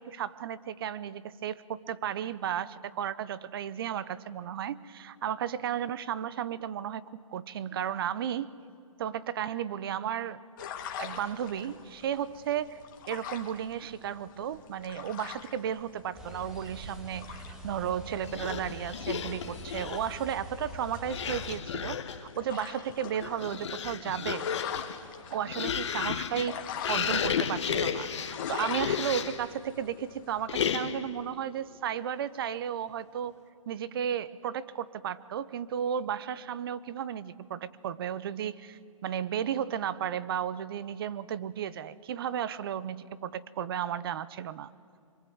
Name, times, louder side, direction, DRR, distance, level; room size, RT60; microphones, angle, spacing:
voice 1, 0.0-8.6 9.0-10.4 11.0-24.5 25.3-33.4 33.7-44.7, right 9 dB, 45° right, 16 dB, 0.7 m, -34 dB
sound 1, 10.6-30.5, left 8 dB, 35° left, 1.9 m, -44 dB
sound 2, 16.1-21.6, equal, 5° right, 2.0 m, -44 dB
sound 3, 18.2-20.2 21.0-22.3 23.0-29.5 30.5-31.2, left 7 dB, 55° left, 1.5 m, -33 dB
25.0 x 23.0 x 7.9 m, 2.4 s
hypercardioid pair, 145°, 18 cm